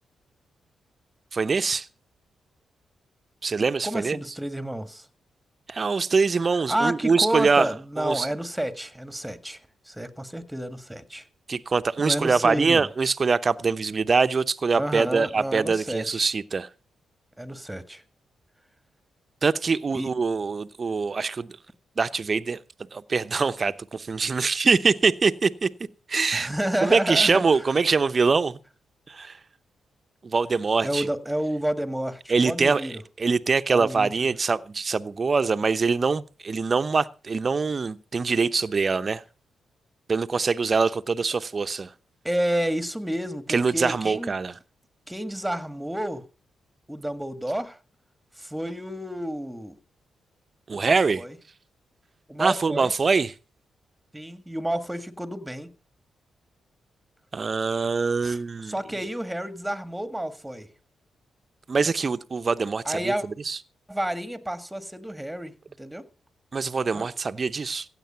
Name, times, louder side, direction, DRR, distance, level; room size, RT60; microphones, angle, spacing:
voice 1, 1.3-1.9 3.4-4.2 5.7-7.7 8.0-8.3 11.5-16.7 19.4-21.6 22.0-22.6 22.9-25.7 26.1-26.5 26.8-28.6 29.1-29.4 30.2-31.1 32.3-32.8 33.2-39.2 40.1-41.9 43.5-44.5 50.7-51.2 52.4-53.3 57.3-58.7 61.7-63.1 63.5-63.6 66.5-67.9, right 4 dB, 45° right, 0.8 m, -23 dB
voice 2, 3.8-5.1 6.7-9.6 9.8-11.3 12.0-12.9 14.8-16.3 17.4-18.0 19.9-20.1 26.3-27.7 30.8-33.0 33.7-34.3 42.2-44.3 45.1-46.3 46.9-47.8 48.3-49.8 50.7-51.4 52.3-52.9 54.1-55.7 58.2-60.7 62.8-63.2 63.9-66.1 66.9-67.1, right 1 dB, 5° right, 1.8 m, -30 dB
16.0 x 8.3 x 5.8 m
supercardioid pair, 50°, 0 cm